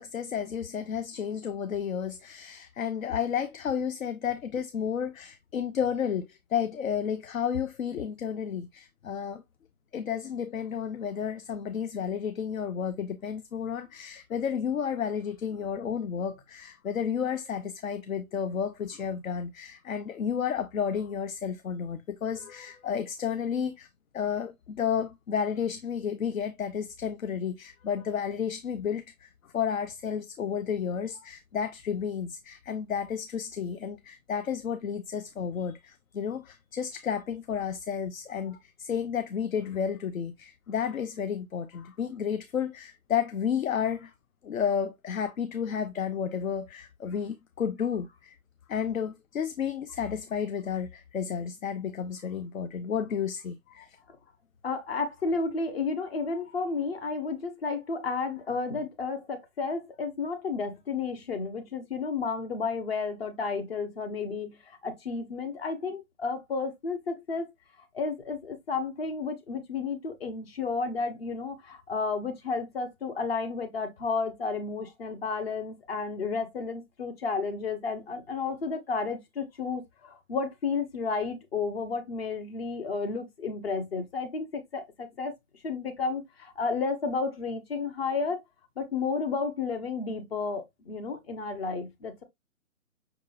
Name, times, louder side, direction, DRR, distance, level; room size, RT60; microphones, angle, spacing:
voice 1, 0.0-9.4 9.9-23.9 24.1-44.1 44.4-48.4 48.7-54.0, left 7 dB, 70° left, 0.7 m, -32 dB
voice 2, 54.6-67.5 67.9-85.4 85.6-88.4 88.8-92.2, left 4 dB, 45° left, 1.1 m, -32 dB
5.7 x 3.6 x 2.5 m
figure-of-eight pair, 145°, 43 cm